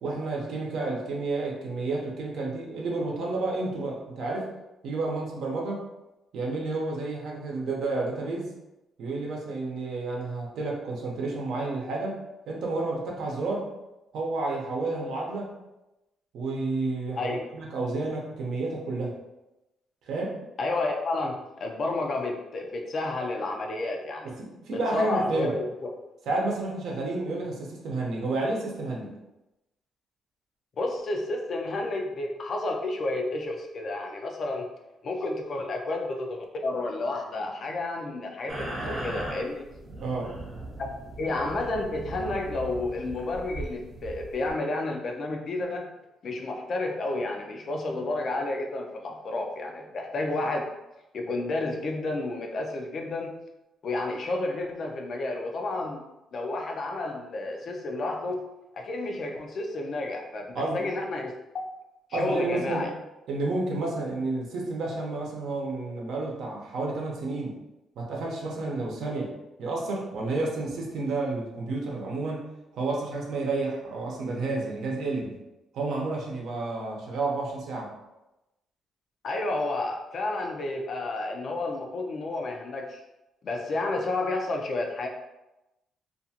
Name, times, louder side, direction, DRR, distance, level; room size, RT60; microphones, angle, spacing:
voice 1, 0.0-4.5 4.8-5.8 6.3-8.5 9.0-13.7 14.1-15.5 16.3-19.1 20.1-20.4 24.2-25.6 26.3-29.1 40.0-40.3 60.5-60.8 62.1-62.9 63.3-67.6 68.0-69.3 69.6-72.5 72.7-75.4 75.7-77.9, right 3 dB, 75° right, -2 dB, 0.7 m, -30 dB
voice 2, 17.2-17.5 20.6-24.3 24.9-25.9 30.8-34.6 35.0-39.7 40.8-40.9 41.2-45.9 46.2-50.7 51.1-53.4 53.8-56.0 56.3-58.4 58.7-61.3 62.1-62.9 79.2-83.0 83.4-85.1, left 2 dB, 50° left, 2 dB, 0.5 m, -31 dB
sound 1, 38.5-44.5, right 1 dB, 40° right, 0.7 m, -38 dB
2.5 x 2.3 x 2.8 m, 0.97 s
cardioid pair, 95°, 0 cm